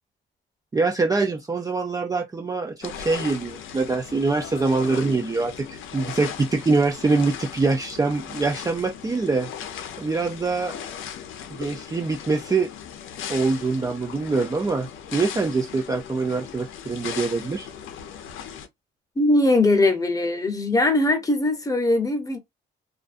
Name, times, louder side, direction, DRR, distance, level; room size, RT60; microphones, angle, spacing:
voice 1, 0.7-9.5 10.0-10.8 11.5-12.7 13.3-17.7, right 3 dB, 20° right, 0.4 m, -24 dB
sound 1, 2.8-18.7, left 8 dB, 80° left, 0.6 m, -38 dB
voice 2, 19.2-22.4, left 2 dB, 15° left, 0.8 m, -20 dB
2.5 x 2.3 x 2.4 m
cardioid pair, 90°, 20 cm